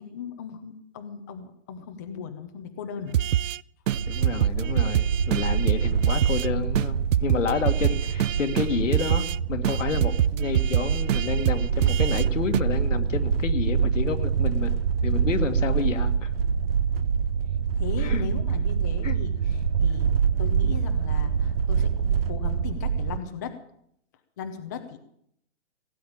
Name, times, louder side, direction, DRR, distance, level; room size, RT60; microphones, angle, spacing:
voice 1, 0.0-3.2 17.8-20.1 20.4-23.6 24.4-25.0, left 7 dB, 15° left, 6 dB, 0.6 m, -37 dB
sound 1, 3.1-3.6 3.9-6.5 6.8-6.9 7.1-9.4 9.6-12.3 12.5-12.6, right 11 dB, 90° right, 0.5 m, -25 dB
sound 2, 3.9-23.2, right 7 dB, 50° right, 1.0 m, -26 dB
voice 2, 4.1-16.3 18.0-18.3 19.0-19.2, left 6 dB, 80° left, 8 dB, 1.8 m, -30 dB
17.0 x 8.5 x 8.6 m, 0.71 s
hypercardioid pair, 165°, 37 cm